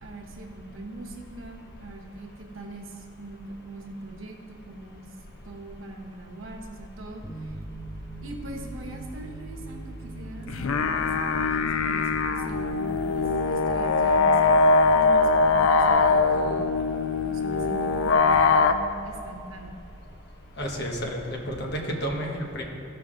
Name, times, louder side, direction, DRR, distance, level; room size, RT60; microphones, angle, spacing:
voice 1, 0.0-5.1 5.4-7.6 8.2-14.6 14.9-16.6 17.2-19.8, right 2 dB, 75° right, 2 dB, 1.1 m, -42 dB
sound 1, 7.2-20.4, right 1 dB, 15° left, 0.7 m, -41 dB
sound 2, 10.5-18.7, left 4 dB, 85° left, 0.5 m, -22 dB
voice 2, 20.6-22.6, equal, 55° left, 1 dB, 1.2 m, -31 dB
14.5 x 5.6 x 3.7 m, 2.6 s
head